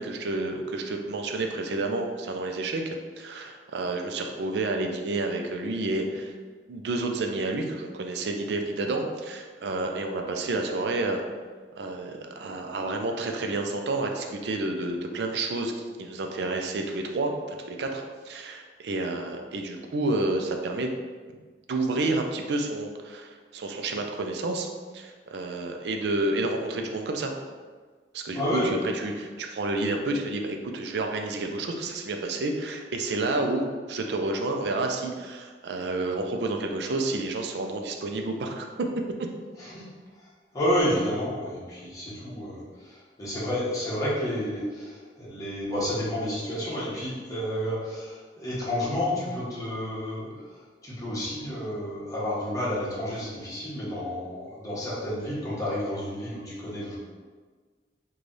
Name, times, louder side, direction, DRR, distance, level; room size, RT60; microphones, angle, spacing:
voice 1, 0.0-6.3 6.7-11.2 11.8-15.7 16.0-21.0 21.7-27.3 28.1-39.3, right 2 dB, 65° right, 3 dB, 0.4 m, -30 dB
voice 2, 28.3-29.1 39.5-39.8 40.2-40.3 40.5-50.3 50.8-57.0, equal, 20° left, -8 dB, 1.1 m, -30 dB
3.2 x 2.3 x 3.9 m, 1.5 s
head